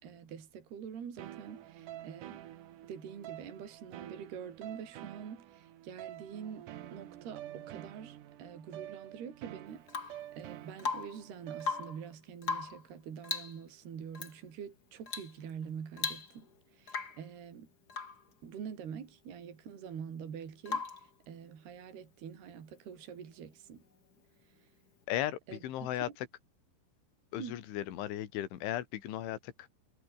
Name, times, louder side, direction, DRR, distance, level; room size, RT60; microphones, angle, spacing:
voice 1, 0.0-2.4 2.8-17.7 18.4-23.8 24.4-24.7 25.5-25.6 26.0-26.2 27.4-27.6, right 7 dB, 55° right, 5.7 m, -46 dB
sound 1, 1.2-12.2, right 13 dB, 85° right, 1.8 m, -48 dB
Rain / Water tap faucet / Drip, 9.9-10.3 10.8-11.3 11.6-12.0 12.4-12.9 13.2-13.6 14.1-14.3 15.1-15.4 15.6-15.7 16.0-16.5 16.9-17.3 17.9-18.2 20.7-21.1 23.0-23.1, left 4 dB, 30° left, 2.0 m, -37 dB
voice 2, 25.1-26.1 27.3-29.7, left 13 dB, 75° left, 4.5 m, -36 dB
omnidirectional pair, 5.7 m